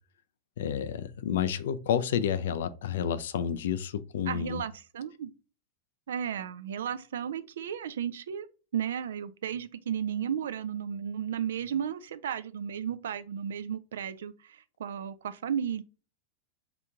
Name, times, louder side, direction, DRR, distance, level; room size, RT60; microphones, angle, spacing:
voice 1, 0.6-4.6, left 8 dB, 60° left, 0.3 m, -30 dB
voice 2, 4.3-5.3 6.1-8.5 8.7-15.8, right 8 dB, 60° right, 0.3 m, -34 dB
3.2 x 2.9 x 3.5 m
figure-of-eight pair, 90°, 0 cm